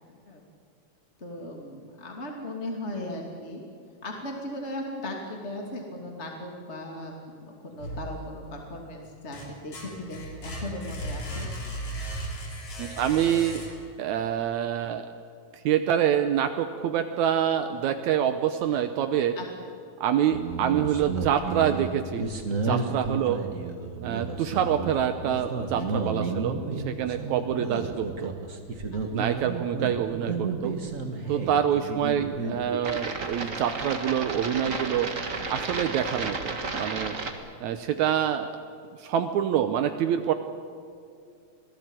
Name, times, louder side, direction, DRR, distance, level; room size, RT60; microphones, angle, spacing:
voice 1, 1.2-3.6 4.0-11.5 19.3-19.5 22.6-22.8 25.7-26.1 28.9-29.3 31.2-31.5, left 1 dB, 25° left, 1 dB, 2.6 m, -38 dB
sound 1, 7.8-8.6 9.1-14.1, right 1 dB, 70° left, 4.9 m, -36 dB
voice 2, 12.8-13.6 14.0-15.1 15.7-19.3 20.0-22.2 22.6-23.4 24.0-26.6 26.9-28.3 29.1-30.7 31.3-35.1 35.5-37.2 37.6-38.5 39.0-40.3, right 9 dB, 75° right, 8 dB, 2.2 m, -26 dB
sound 2, 20.3-37.3, right 4 dB, 30° right, 1.8 m, -32 dB
27.0 x 18.0 x 9.0 m, 2.4 s
omnidirectional pair, 3.4 m